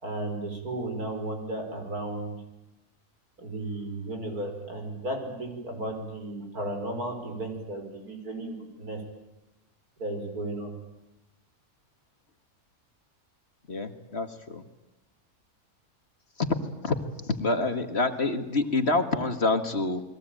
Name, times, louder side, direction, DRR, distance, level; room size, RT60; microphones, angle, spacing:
voice 1, 0.0-2.4 3.4-9.0 10.0-10.7, right 1 dB, 75° right, 4 dB, 5.7 m, -34 dB
voice 2, 13.7-14.6 16.4-16.5 16.8-17.0 17.3-20.0, left 3 dB, 45° left, 8 dB, 1.9 m, -27 dB
29.5 x 21.5 x 9.1 m, 0.93 s
omnidirectional pair, 1.6 m